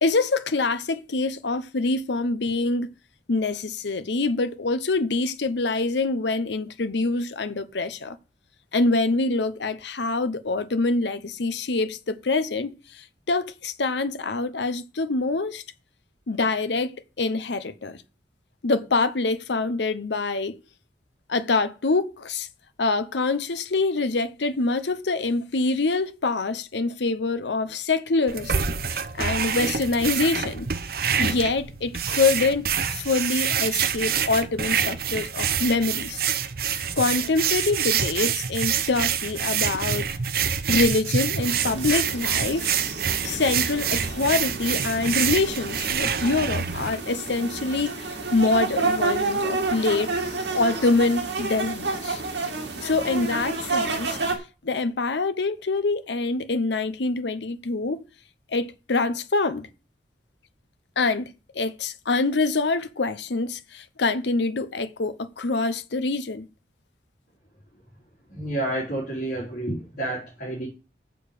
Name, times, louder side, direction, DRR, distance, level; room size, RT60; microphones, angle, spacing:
voice 1, 0.0-2.9 3.3-8.2 8.7-15.6 16.3-18.0 18.6-20.6 21.3-22.5 22.8-30.7 31.2-36.2 37.0-40.1 40.7-42.8 43.2-50.2 50.5-52.2 52.8-54.2 54.6-58.0 58.5-59.7 61.0-66.5, left 3 dB, 80° left, 0.8 m, -25 dB
sound 1, 28.3-46.9, right 7 dB, 55° right, 0.8 m, -26 dB
sound 2, 41.4-54.4, right 3 dB, 75° right, 2.3 m, -30 dB
voice 2, 68.3-70.7, right 1 dB, 50° left, 4.0 m, -29 dB
7.1 x 6.7 x 6.6 m
head